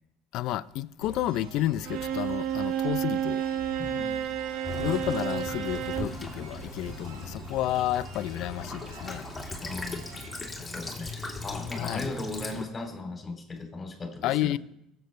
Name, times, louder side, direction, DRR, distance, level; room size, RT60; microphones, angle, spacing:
voice 1, 0.3-3.4 4.8-9.3 11.8-12.1 14.2-14.6, left 14 dB, 65° left, 0.4 m, -31 dB
sound 1, 1.0-11.6, right 4 dB, 85° right, 3.1 m, -47 dB
Bowed string instrument, 1.8-6.2, right 9 dB, 65° right, 0.7 m, -30 dB
voice 2, 3.8-4.2 9.6-10.1 10.6-14.5, left 3 dB, 30° left, 2.8 m, -37 dB
Child speech kid speaking / Bird vocalization bird call bird song / Stream, 4.6-12.6, left 3 dB, 15° left, 2.7 m, -39 dB
20.5 x 7.9 x 3.2 m
hypercardioid pair, 75°, 0 cm